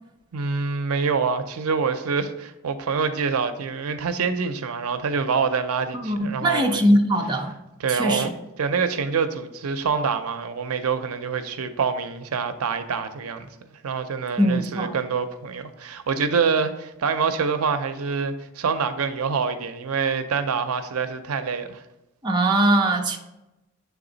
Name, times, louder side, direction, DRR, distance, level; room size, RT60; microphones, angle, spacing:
voice 1, 0.3-6.9 7.8-8.3 8.6-13.5 13.8-21.8, right 5 dB, 85° right, 0.5 m, -26 dB
voice 2, 5.9-7.5 7.9-8.3 14.4-14.9 22.2-23.2, right 1 dB, 20° right, 0.5 m, -21 dB
6.9 x 3.5 x 3.8 m
head